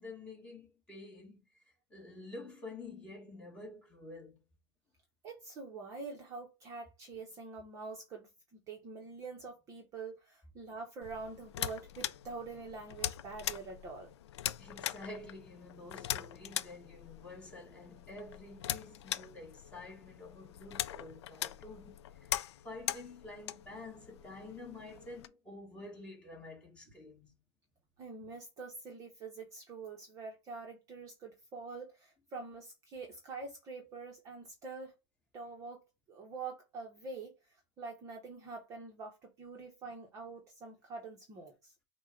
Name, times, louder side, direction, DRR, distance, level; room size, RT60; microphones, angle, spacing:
voice 1, 0.0-1.6 1.9-4.4 14.6-22.3 22.6-27.4, left 2 dB, 10° left, 1.7 m, -49 dB
voice 2, 5.2-14.1 28.0-35.0 35.3-37.3 37.8-41.7, right 4 dB, 25° right, 0.9 m, -45 dB
sound 1, 11.0-25.3, left 12 dB, 85° left, 0.4 m, -41 dB
6.0 x 2.2 x 3.8 m
supercardioid pair, 160°, 14 cm